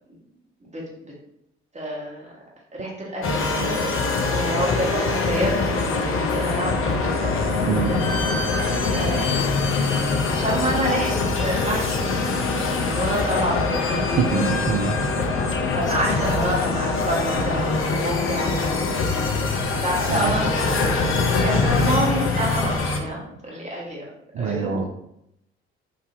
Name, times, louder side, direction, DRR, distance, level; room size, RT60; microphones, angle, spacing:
voice 1, 0.7-1.1 1.7-2.3 2.7-3.7 4.3-7.3 8.9-9.7 10.2-14.3 15.7-19.1 19.8-21.1 21.4-24.0 24.4-24.9, right 1 dB, 20° right, -4 dB, 1.3 m, -28 dB
sound 1, 3.2-23.0, left 3 dB, 40° left, 0.6 m, -23 dB
voice 2, 7.6-8.0 14.2-15.0 20.1-20.3 24.3-24.8, right 6 dB, 45° right, 3 dB, 0.4 m, -24 dB
3.6 x 2.6 x 2.5 m, 0.80 s
figure-of-eight pair, 45°, 32 cm